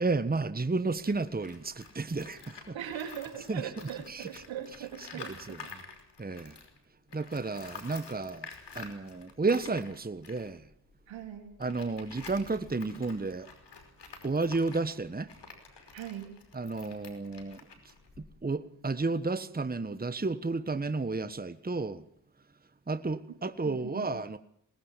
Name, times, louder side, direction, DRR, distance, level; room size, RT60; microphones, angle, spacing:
voice 1, 0.0-2.8 3.5-3.7 4.1-4.4 5.0-5.8 6.2-6.6 7.1-10.7 11.6-13.5 14.2-15.3 16.5-17.6 17.8-22.0 22.9-24.4, right 3 dB, 20° right, 1.4 m, -32 dB
Tools, 1.0-6.8 7.1-18.5, left 5 dB, 65° left, 5.2 m, -49 dB
voice 2, 2.7-5.7 11.1-11.5 15.9-16.4 23.6-24.1, right 9 dB, 85° right, 3.7 m, -40 dB
21.5 x 19.5 x 7.5 m
supercardioid pair, 40°, 45 cm